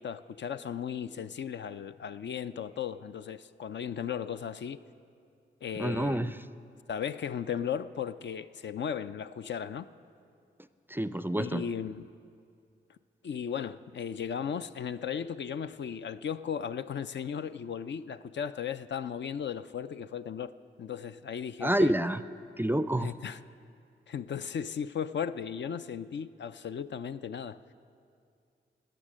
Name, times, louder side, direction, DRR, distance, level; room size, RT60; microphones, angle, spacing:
voice 1, 0.0-4.8 5.6-6.3 6.9-9.9 11.4-12.1 13.2-20.5 20.8-21.9 23.0-23.4 24.1-27.6, left 8 dB, 60° left, 0.4 m, -36 dB
voice 2, 5.8-6.3 10.9-11.6 21.6-22.2 22.6-23.1, right 1 dB, 10° right, 0.4 m, -28 dB
19.5 x 6.6 x 6.2 m
supercardioid pair, 40°, 21 cm